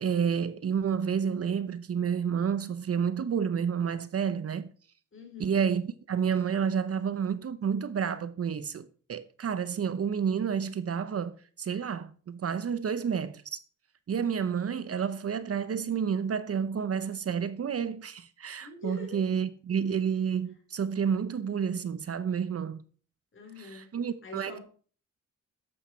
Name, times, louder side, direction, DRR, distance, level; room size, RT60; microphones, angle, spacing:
voice 1, 0.0-4.7 5.4-13.6 14.1-22.8 23.7-24.6, right 7 dB, 50° right, 0.8 m, -30 dB
voice 2, 5.1-5.6 18.6-19.2 23.3-23.9 24.2-24.6, left 2 dB, 40° left, 3.9 m, -44 dB
11.5 x 8.2 x 4.4 m
cardioid pair, 95°, 31 cm